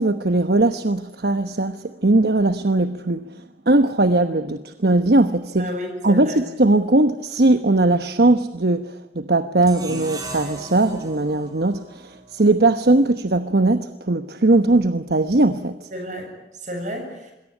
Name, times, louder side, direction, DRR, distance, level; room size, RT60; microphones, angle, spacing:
voice 1, 0.0-5.7 6.0-15.9, right 2 dB, 65° right, 10 dB, 1.1 m, -19 dB
voice 2, 5.6-6.4 15.9-17.3, equal, 45° right, 4 dB, 7.8 m, -32 dB
sound 1, 9.6-12.8, right 1 dB, 20° right, 5.5 m, -36 dB
27.0 x 22.0 x 9.9 m, 0.93 s
head